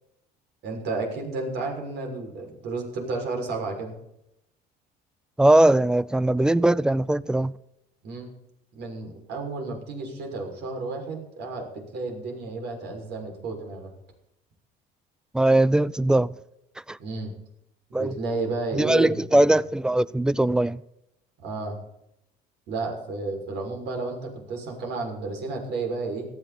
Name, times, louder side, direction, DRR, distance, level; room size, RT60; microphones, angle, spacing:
voice 1, 0.6-3.9 8.0-8.3 8.7-13.9 17.0-17.3 17.9-19.2 21.4-21.8 22.7-26.3, right 3 dB, 70° right, 6.3 m, -32 dB
voice 2, 5.4-7.5 15.3-16.3 16.9-17.0 17.9-18.1 18.7-20.8, right 1 dB, 5° right, 0.5 m, -20 dB
18.0 x 14.5 x 4.3 m
cardioid pair, 110°, 18 cm